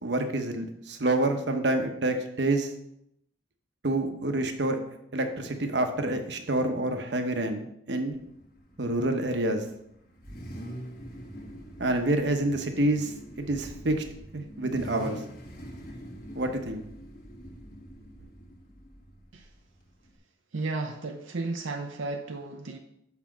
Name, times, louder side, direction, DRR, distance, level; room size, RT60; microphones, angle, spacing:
voice 1, 0.0-2.7 3.8-4.8 5.1-8.2 8.8-9.6 11.8-14.0 14.3-15.2 16.3-16.8, right 2 dB, 60° right, 6 dB, 1.0 m, -27 dB
Car / Idling / Accelerating revving vroom, 8.1-20.2, equal, 45° left, 1.3 m, -44 dB
voice 2, 20.5-22.8, right 3 dB, 85° right, 4 dB, 0.6 m, -34 dB
6.0 x 5.7 x 6.1 m, 0.79 s
head